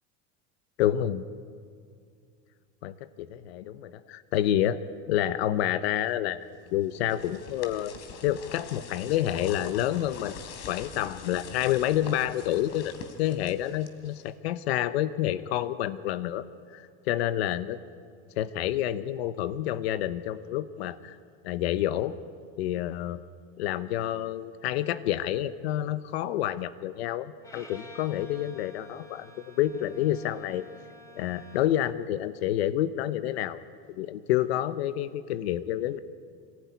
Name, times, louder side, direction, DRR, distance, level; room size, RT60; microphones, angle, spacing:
voice 1, 0.8-1.2 2.8-4.8 5.1-7.9 8.2-10.4 10.7-12.9 13.2-16.4 16.7-17.8 18.4-21.2 21.4-22.2 22.6-23.2 23.6-29.3 29.6-30.6 31.1-33.6 34.0-36.0, left 12 dB, 90° left, 13 dB, 0.9 m, -28 dB
sound 1, 6.7-14.5, left 6 dB, 60° left, 3.3 m, -44 dB
Bowed string instrument, 27.4-31.9, left 1 dB, 10° left, 3.9 m, -50 dB
26.5 x 16.5 x 9.4 m, 2.3 s
supercardioid pair, 115°, 31 cm